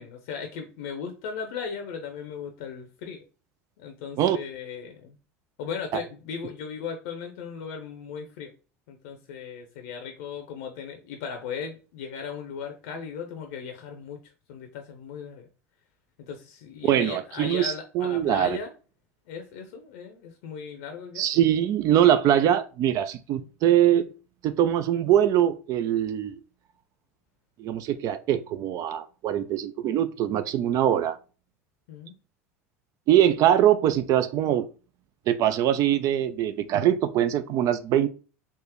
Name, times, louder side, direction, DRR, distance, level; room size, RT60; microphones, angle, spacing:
voice 1, 0.0-3.2 3.8-5.2 5.6-8.5 8.9-15.5 16.2-18.7 19.3-21.2 31.9-32.2, left 6 dB, 65° left, 0.6 m, -37 dB
voice 2, 16.9-18.5 21.2-24.1 24.4-26.4 27.6-31.2 33.1-34.7 35.3-38.1, right 11 dB, 45° right, 0.3 m, -22 dB
3.6 x 2.7 x 2.9 m
hypercardioid pair, 80°, 8 cm